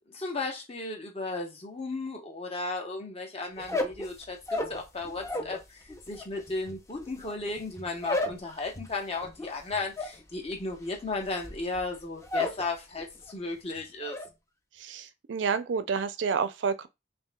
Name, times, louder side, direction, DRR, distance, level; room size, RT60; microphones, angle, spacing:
voice 1, 0.1-14.2, left 3 dB, 30° left, 0.9 m, -35 dB
sound 1, 3.6-5.6 5.9-12.7 13.0-13.5 13.8-14.3, left 2 dB, 15° left, 0.5 m, -34 dB
voice 2, 14.8-16.9, right 6 dB, 70° right, 0.4 m, -29 dB
5.4 x 2.6 x 2.2 m
head